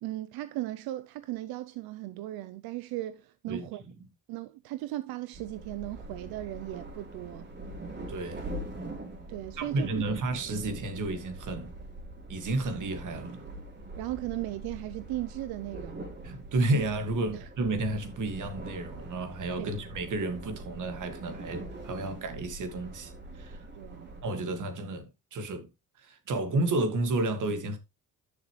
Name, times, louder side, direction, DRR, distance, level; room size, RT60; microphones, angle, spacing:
voice 1, 0.0-3.8 4.3-7.5 9.3-10.0 14.0-16.1 16.7-16.8 17.3-17.5 19.6-19.7 23.8-24.1, right 16 dB, 90° right, 0.6 m, -37 dB
sound 1, 5.3-24.2, right 1 dB, 30° right, 2.9 m, -43 dB
voice 2, 8.1-8.5 9.6-11.8 12.3-13.5 16.2-23.7 24.2-25.7 26.0-27.8, right 2 dB, 60° right, 2.0 m, -31 dB
10.0 x 6.6 x 3.1 m
cardioid pair, 105°, 35 cm